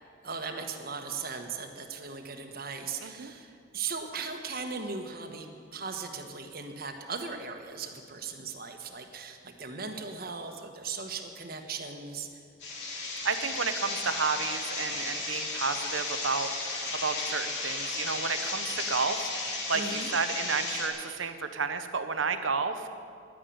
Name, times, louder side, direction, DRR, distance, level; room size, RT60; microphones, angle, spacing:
voice 1, 0.2-12.3 19.7-20.1, right 5 dB, 50° right, 5 dB, 1.3 m, -38 dB
voice 2, 3.0-3.3 13.2-22.9, right 5 dB, 85° right, 9 dB, 0.9 m, -32 dB
sound 1, 12.6-20.9, left 3 dB, 65° left, 2.9 m, -34 dB
11.0 x 10.0 x 9.5 m, 2.3 s
head